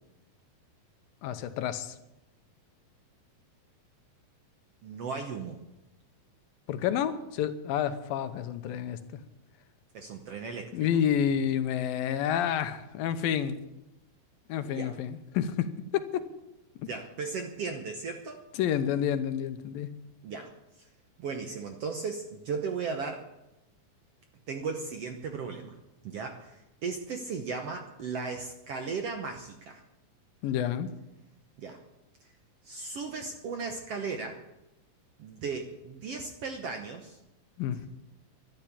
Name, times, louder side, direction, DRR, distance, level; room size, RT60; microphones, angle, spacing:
voice 1, 1.2-2.0 6.7-9.2 10.7-13.6 14.5-16.3 16.8-16.9 18.5-19.9 30.4-30.9 37.6-37.9, left 9 dB, 85° left, 10 dB, 2.6 m, -29 dB
voice 2, 4.8-5.6 9.9-10.8 14.6-14.9 16.9-18.4 20.2-20.5 20.8-20.9 21.2-23.3 24.5-25.8 26.0-29.8 31.6-31.8 32.6-34.4 35.2-37.2, right 5 dB, 65° right, 4 dB, 1.6 m, -36 dB
12.0 x 12.0 x 8.5 m, 0.94 s
omnidirectional pair, 4.1 m